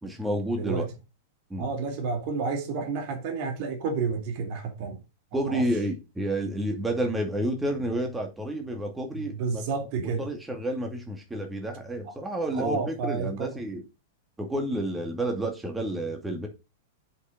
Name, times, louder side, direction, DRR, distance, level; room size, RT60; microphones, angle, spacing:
voice 1, 0.0-0.9 1.5-1.7 5.3-9.6 10.0-13.8 14.4-16.5, right 1 dB, 10° right, 2.3 m, -30 dB
voice 2, 0.6-0.9 1.6-5.0 5.5-5.6 9.1-10.3 12.0-12.1 12.5-13.5, right 4 dB, 45° right, 2.3 m, -30 dB
8.0 x 5.9 x 5.3 m
figure-of-eight pair, 95°, 0 cm